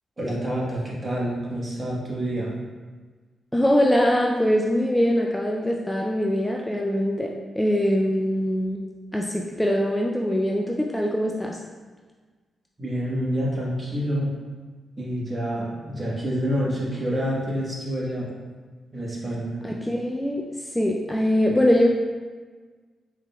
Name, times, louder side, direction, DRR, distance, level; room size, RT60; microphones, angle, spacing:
voice 1, 0.2-2.5 12.8-14.3 15.0-18.3 18.9-19.6, equal, 30° right, -5 dB, 1.3 m, -27 dB
voice 2, 3.5-8.8 9.1-11.6 19.6-20.4 20.7-21.9, equal, 10° left, -1 dB, 0.4 m, -22 dB
4.8 x 3.3 x 2.3 m, 1.4 s
cardioid pair, 65°, 0 cm